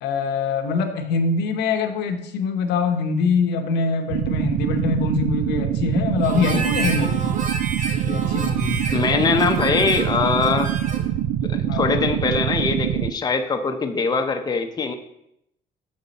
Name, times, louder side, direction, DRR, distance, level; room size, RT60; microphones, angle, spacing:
voice 1, 0.0-7.3 8.0-8.9 11.7-12.1, left 4 dB, 80° left, 6 dB, 0.8 m, -24 dB
sound 1, 4.1-13.1, right 11 dB, 85° right, 0.4 m, -24 dB
Harmonica, 6.2-11.1, right 4 dB, 50° right, 1.0 m, -31 dB
voice 2, 8.9-10.7 11.4-14.9, left 4 dB, 25° left, 5 dB, 0.7 m, -22 dB
6.8 x 5.3 x 4.0 m, 0.77 s
cardioid pair, 110°, 17 cm